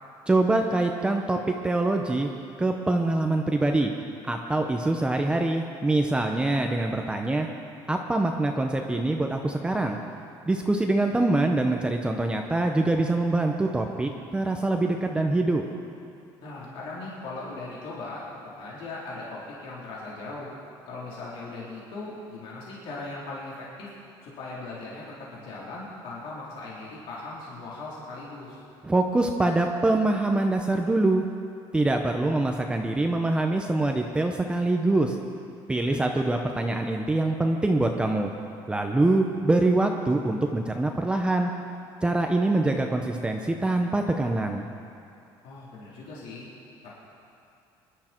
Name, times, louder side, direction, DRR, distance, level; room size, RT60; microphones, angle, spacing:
voice 1, 0.3-2.3 2.6-3.9 4.2-7.5 7.9-10.0 10.5-15.6 28.8-31.2 31.7-35.2 35.7-38.3 38.7-41.5 42.0-44.7, right 2 dB, 10° right, 3 dB, 0.8 m, -24 dB
voice 2, 16.4-18.2 18.6-20.5 20.9-23.9 24.2-28.6 35.9-36.1 45.4-46.5 46.8-47.0, left 2 dB, 75° left, -6 dB, 3.9 m, -39 dB
23.5 x 11.5 x 4.5 m, 2.5 s
cardioid pair, 135°, 9 cm